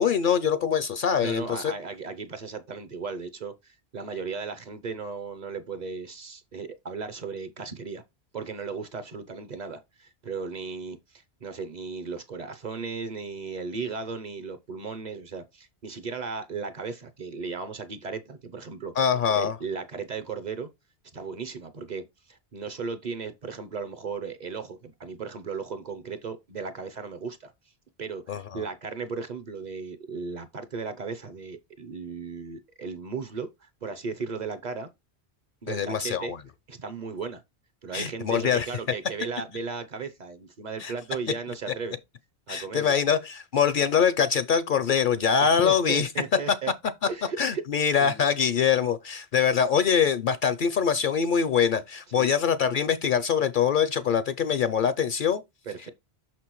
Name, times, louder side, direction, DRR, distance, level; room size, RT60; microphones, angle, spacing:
voice 1, 0.0-1.7 19.0-19.6 28.3-28.4 35.7-36.4 37.9-38.7 40.8-40.9 42.5-46.4 47.4-55.4, left 7 dB, 60° left, 0.6 m, -24 dB
voice 2, 1.2-8.0 8.3-18.9 19.3-20.7 21.1-22.0 22.3-27.5 28.0-34.9 35.6-36.3 36.7-37.4 37.8-42.0 42.5-43.0 45.4-46.7 47.1-47.6 48.0-48.2 52.2-52.3 55.7-55.9, right 5 dB, 45° right, 0.7 m, -36 dB
6.1 x 6.0 x 3.0 m
omnidirectional pair, 1.1 m